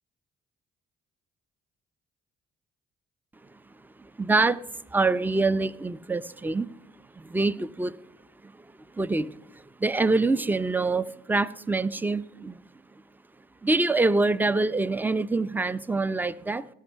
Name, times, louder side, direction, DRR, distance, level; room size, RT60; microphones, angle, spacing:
voice 1, 4.0-4.6 4.9-6.7 7.2-8.0 8.4-8.5 8.9-12.6 13.6-16.7, right 3 dB, 5° right, 0.5 m, -25 dB
16.5 x 5.6 x 7.2 m
hypercardioid pair, 45°, 29 cm